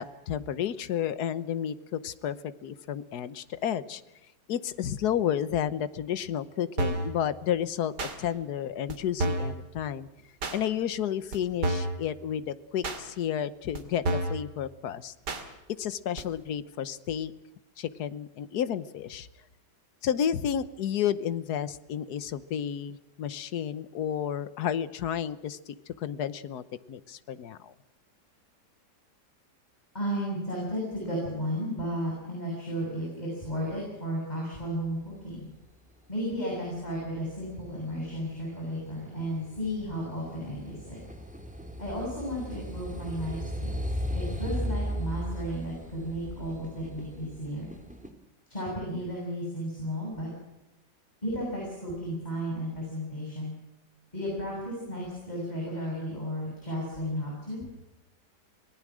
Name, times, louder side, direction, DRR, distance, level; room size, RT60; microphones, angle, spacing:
voice 1, 0.0-2.4 2.6-4.0 4.5-10.1 10.5-15.1 15.8-17.3 17.8-19.3 20.0-27.7, left 9 dB, 65° left, 15 dB, 1.4 m, -31 dB
sound 1, 6.8-7.1 8.0-8.1 8.9-9.0 9.2-9.5 10.4-10.6 11.3-11.4 11.6-12.0 12.8-13.0 13.7-13.8 14.0-14.4 15.3-15.4 16.2-16.3, right 2 dB, 70° right, 3.0 m, -29 dB
voice 2, 29.9-35.5 36.1-41.0 41.8-43.8 44.1-47.7 48.5-50.3 51.2-53.5 54.1-57.6, equal, 25° left, -3 dB, 7.8 m, -34 dB
sound 2, 36.7-48.1, equal, 5° right, 2.3 m, -36 dB
26.0 x 19.5 x 6.3 m, 1.0 s
omnidirectional pair, 1.9 m